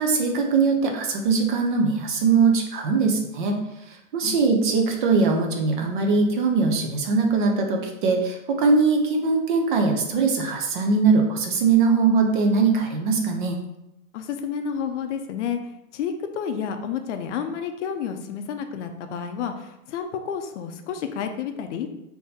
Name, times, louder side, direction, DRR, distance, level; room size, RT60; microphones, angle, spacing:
voice 1, 0.0-3.6 3.9-13.6, right 4 dB, 40° right, 3 dB, 0.5 m, -21 dB
voice 2, 14.1-15.6 15.9-21.9, left 7 dB, 60° left, 7 dB, 0.6 m, -30 dB
3.5 x 2.8 x 4.1 m, 0.87 s
supercardioid pair, 165°, 41 cm